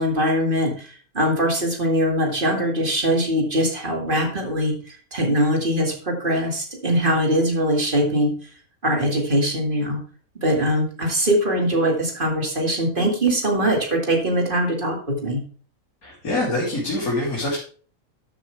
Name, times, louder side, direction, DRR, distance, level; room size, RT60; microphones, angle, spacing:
voice 1, 0.0-8.3 8.8-10.0 10.4-15.4, equal, 35° right, 2 dB, 2.3 m, -22 dB
voice 2, 16.0-17.6, left 2 dB, 80° left, -6 dB, 3.6 m, -25 dB
12.5 x 7.3 x 3.4 m, 0.42 s
omnidirectional pair, 1.5 m